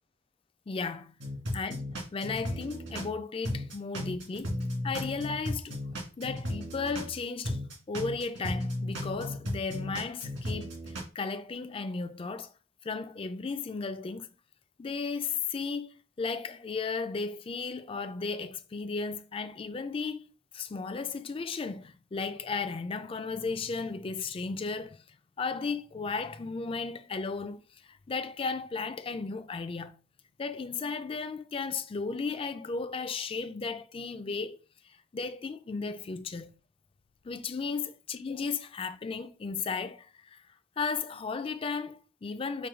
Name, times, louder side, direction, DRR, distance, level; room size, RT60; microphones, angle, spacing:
voice 1, 0.7-1.2 1.5-5.8 6.2-7.6 7.9-12.5 12.8-14.3 14.8-25.0 25.4-29.9 30.4-34.6 35.1-36.5 37.2-40.4 40.8-42.7, left 4 dB, 30° left, 0.4 m, -35 dB
sound 1, 1.2-3.1 3.4-7.1 7.4-11.0, left 1 dB, 75° right, 2.0 m, -35 dB
4.6 x 2.3 x 4.8 m
head